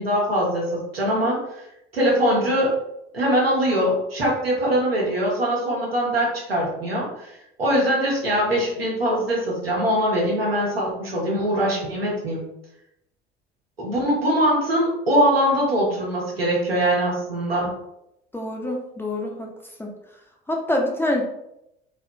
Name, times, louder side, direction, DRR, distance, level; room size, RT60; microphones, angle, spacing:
voice 1, 0.0-1.7 1.9-2.8 3.1-7.3 7.6-12.4 13.8-17.7, equal, 85° right, -4 dB, 0.9 m, -22 dB
voice 2, 18.3-19.5 19.8-19.9 20.5-21.2, left 1 dB, 10° left, 0 dB, 0.4 m, -25 dB
2.6 x 2.5 x 2.2 m, 0.82 s
figure-of-eight pair, 60°, 29 cm